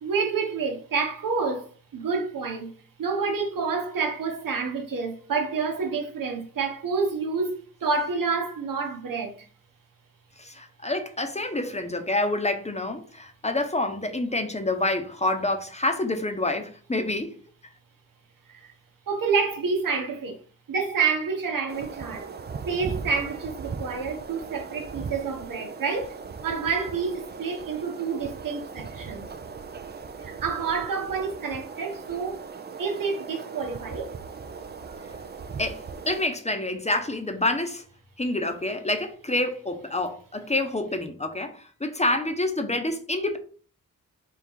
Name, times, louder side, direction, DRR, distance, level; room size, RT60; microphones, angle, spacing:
voice 1, 0.0-2.7 3.0-9.4 18.5-18.7 19.1-20.4 20.7-22.3 22.7-29.3 30.2-32.5 32.8-34.2 34.9-35.0, right 5 dB, 75° right, 0.9 m, -28 dB
voice 2, 10.4-17.3 35.6-37.8 38.2-43.4, left 2 dB, 20° left, 0.8 m, -27 dB
sound 1, 21.7-36.3, right 5 dB, 30° right, 0.4 m, -39 dB
3.7 x 2.4 x 4.4 m
cardioid pair, 45°, 33 cm